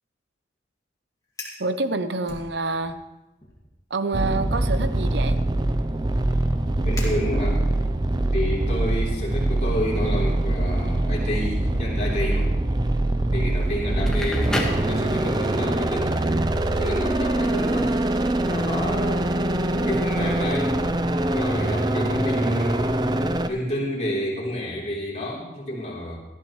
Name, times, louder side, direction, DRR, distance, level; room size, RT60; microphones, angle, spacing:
Fire, 1.2-1.7 2.2-3.0 3.4-3.7 4.4-7.8, left 2 dB, 20° left, 2.2 m, -43 dB
voice 1, 1.6-3.0 3.9-5.4, right 3 dB, 75° right, 10 dB, 0.8 m, -27 dB
sound 1, 4.1-23.5, right 1 dB, 25° right, 0.5 m, -23 dB
voice 2, 6.7-7.6 8.3-12.5 13.3-16.2 16.8-18.0 18.4-19.4 19.8-20.7 21.3-23.2 23.5-26.2, equal, 40° left, -4 dB, 3.6 m, -29 dB
Crackle, 13.9-15.6, left 1 dB, 5° left, 1.6 m, -30 dB
18.0 x 13.0 x 3.2 m, 0.98 s
head